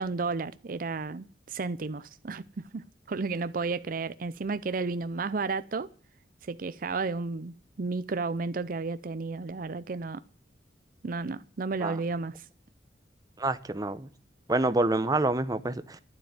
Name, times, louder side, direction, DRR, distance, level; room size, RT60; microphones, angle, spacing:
voice 1, 0.0-5.9 6.4-10.2 11.0-12.5, right 4 dB, 50° right, 0.5 m, -32 dB
voice 2, 13.4-14.1 14.5-16.0, right 2 dB, 20° right, 0.8 m, -27 dB
12.0 x 7.8 x 9.6 m
head